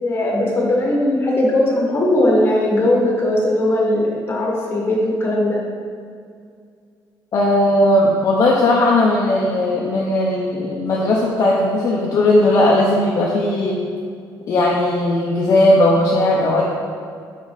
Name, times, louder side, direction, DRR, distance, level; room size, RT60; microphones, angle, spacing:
voice 1, 0.0-5.6, left 1 dB, 30° left, -3 dB, 1.5 m, -18 dB
voice 2, 7.3-13.8 14.5-16.6, left 1 dB, 45° left, -4 dB, 0.8 m, -17 dB
6.7 x 5.3 x 4.1 m, 2.2 s
cardioid pair, 165°, 8 cm